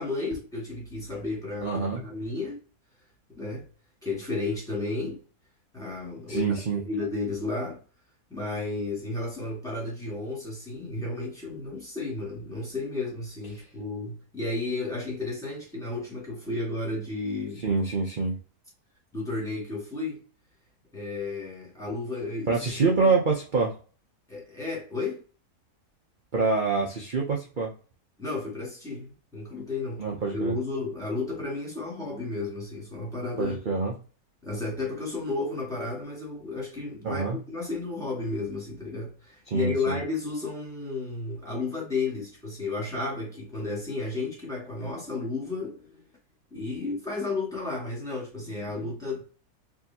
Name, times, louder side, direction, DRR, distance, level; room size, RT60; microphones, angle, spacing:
voice 1, 0.0-2.6 3.4-3.7 4.0-5.2 5.7-6.6 6.8-7.8 8.3-17.6 19.1-20.2 20.9-22.6 23.0-23.1 24.3-25.2 28.2-30.0 30.3-33.6 34.4-46.0 46.5-49.2, left 3 dB, ahead, 1.9 m, -33 dB
voice 2, 1.6-2.0 6.3-6.8 17.6-18.4 22.5-23.7 26.3-27.7 30.0-30.5 33.4-33.9 37.0-37.4 39.5-40.0, right 4 dB, 45° right, 0.7 m, -26 dB
4.7 x 2.8 x 2.8 m
omnidirectional pair, 1.6 m